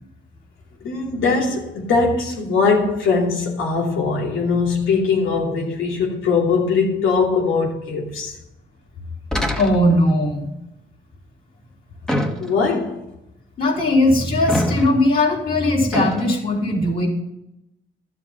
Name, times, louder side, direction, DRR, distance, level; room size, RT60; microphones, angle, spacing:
voice 1, 0.8-8.3 12.4-13.0, left 4 dB, 85° left, 2.9 m, -21 dB
sound 1, 9.3-10.1 12.1-12.8 14.5-15.1 15.9-16.3, left 1 dB, 5° left, 1.4 m, -25 dB
voice 2, 9.6-10.5 13.6-17.1, left 1 dB, 50° left, 3.6 m, -18 dB
12.0 x 7.5 x 5.6 m
cardioid pair, 90°, 20 cm